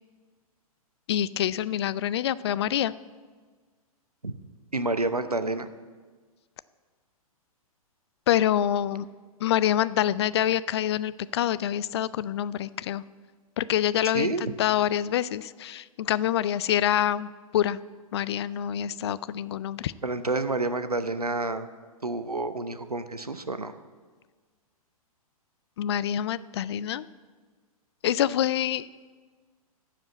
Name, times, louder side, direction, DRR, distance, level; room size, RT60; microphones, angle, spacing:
voice 1, 1.1-2.9 8.3-9.1 9.4-13.0 13.6-17.8 18.1-19.9 25.8-27.1 28.0-28.9, left 11 dB, 45° left, 17 dB, 0.4 m, -26 dB
voice 2, 4.7-5.7 14.1-14.4 20.0-21.7 22.0-23.7, right 2 dB, 90° right, 10 dB, 0.8 m, -29 dB
13.5 x 5.0 x 8.1 m, 1.5 s
figure-of-eight pair, 110°, 19 cm